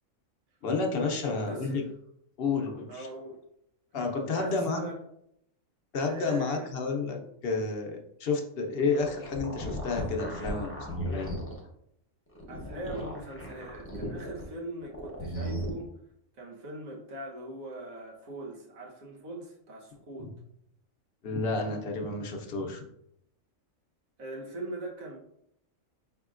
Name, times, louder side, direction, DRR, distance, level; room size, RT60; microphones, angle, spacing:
voice 1, 0.6-1.8 2.4-3.1 3.9-4.8 5.9-10.8 11.0-11.3 21.2-22.8, left 4 dB, 55° left, 2 dB, 0.8 m, -30 dB
voice 2, 1.2-1.8 2.9-3.4 4.3-5.0 6.0-6.7 12.5-15.9 16.4-20.3 24.2-25.2, right 2 dB, 85° right, -3 dB, 1.5 m, -41 dB
sound 1, 8.8-11.6 12.3-14.4 14.8-15.7, equal, 10° left, 0.8 m, -36 dB
5.0 x 3.6 x 2.4 m, 0.76 s
omnidirectional pair, 1.4 m